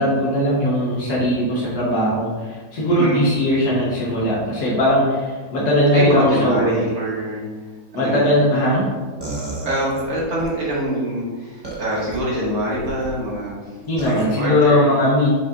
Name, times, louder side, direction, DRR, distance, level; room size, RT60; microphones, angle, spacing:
voice 1, 0.0-6.8 7.9-8.9 13.9-15.3, equal, 85° left, -6 dB, 1.7 m, -19 dB
voice 2, 2.9-3.3 5.9-7.4 7.9-8.3 9.6-13.5 14.0-15.0, right 1 dB, 65° right, -6 dB, 2.2 m, -24 dB
sound 1, 9.2-10.5 11.6-12.2 12.7-13.1 14.0-14.2, right 2 dB, 20° right, 0.7 m, -32 dB
7.6 x 5.1 x 2.4 m, 1.4 s
omnidirectional pair, 1.7 m